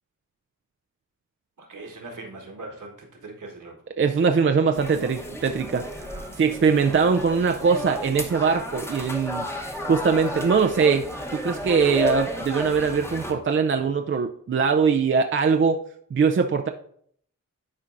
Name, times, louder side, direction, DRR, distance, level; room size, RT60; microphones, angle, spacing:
voice 1, 1.6-3.8 5.7-6.4, right 2 dB, 65° right, 2 dB, 1.4 m, -41 dB
voice 2, 4.0-5.8 6.4-9.4 9.9-11.1 11.3-15.8 16.1-16.7, right 5 dB, 40° right, 5 dB, 0.4 m, -21 dB
sound 1, 4.7-13.3, equal, 10° left, 1.0 m, -33 dB
11.0 x 4.4 x 2.5 m, 0.63 s
cardioid pair, 65°, 33 cm